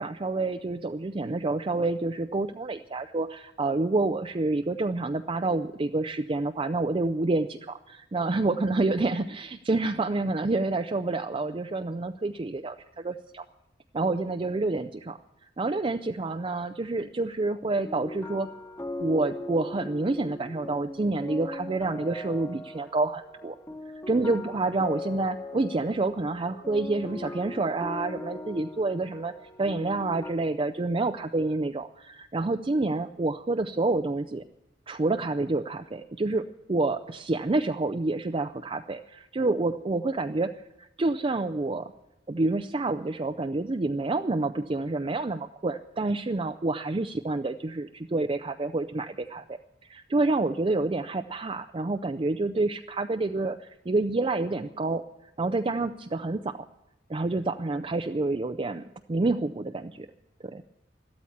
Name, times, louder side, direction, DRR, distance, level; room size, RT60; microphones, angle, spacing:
voice 1, 0.0-13.4 13.9-15.2 15.6-18.5 19.0-23.6 24.1-29.3 29.6-34.4 34.9-41.9 42.3-49.4 49.8-55.0 55.4-56.6 57.1-60.1 60.4-60.6, right 2 dB, 30° right, 7 dB, 0.5 m, -28 dB
sound 1, 17.9-30.3, left 1 dB, 15° left, 1.3 m, -40 dB
13.0 x 13.0 x 7.2 m, 0.90 s
head